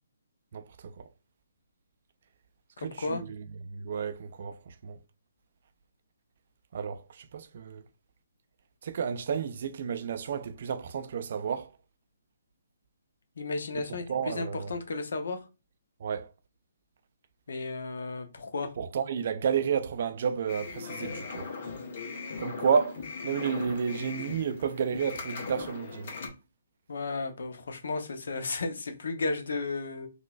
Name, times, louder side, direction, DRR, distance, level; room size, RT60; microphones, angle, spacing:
voice 1, 0.5-0.9 2.8-5.0 6.7-7.8 8.8-11.7 13.9-14.7 16.0-16.3 18.8-21.5 22.4-23.0 23.2-26.1, right 7 dB, 55° right, 0.3 m, -31 dB
voice 2, 2.8-3.2 13.4-15.4 17.5-18.7 26.9-30.1, left 3 dB, 70° left, 0.7 m, -34 dB
sound 1, 20.5-26.3, left 4 dB, 50° left, 1.1 m, -39 dB
3.8 x 2.3 x 2.3 m
hypercardioid pair, 150°, 0 cm